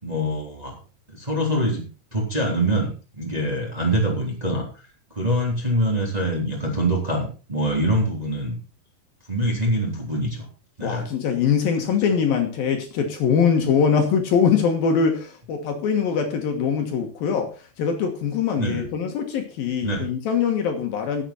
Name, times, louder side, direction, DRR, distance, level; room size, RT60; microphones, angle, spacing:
voice 1, 0.0-0.7 1.1-1.8 2.1-4.7 5.1-8.6 9.3-10.4 10.8-11.0 18.6-18.8 19.8-20.0, right 1 dB, 10° right, -2 dB, 2.7 m, -24 dB
voice 2, 10.8-17.5 17.8-21.2, left 6 dB, 65° left, 4 dB, 3.0 m, -22 dB
16.0 x 7.7 x 4.3 m, 0.36 s
omnidirectional pair, 4.8 m